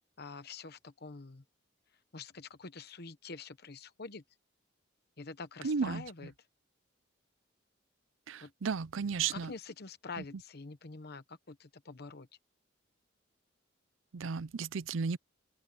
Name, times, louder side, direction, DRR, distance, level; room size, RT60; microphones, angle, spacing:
voice 1, 0.2-1.4 2.1-4.2 5.2-6.3 8.4-8.5 9.3-12.3, left 4 dB, 55° left, 1.0 m, -46 dB
voice 2, 5.6-6.0 8.3-9.5 14.1-15.2, right 5 dB, 80° right, 0.5 m, -33 dB
open air
head